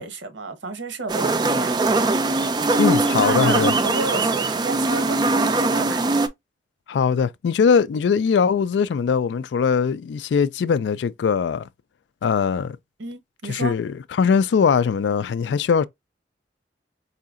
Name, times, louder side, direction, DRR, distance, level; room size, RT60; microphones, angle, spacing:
voice 1, 0.0-1.8 2.8-5.2 5.5-6.1 13.0-13.7, right 3 dB, 80° right, 0.9 m, -31 dB
sound 1, 1.1-6.3, right 3 dB, 25° right, 0.4 m, -21 dB
voice 2, 2.8-3.7 6.9-11.7 12.2-12.8 13.5-15.9, left 6 dB, 70° left, 0.3 m, -21 dB
4.9 x 2.7 x 2.4 m
head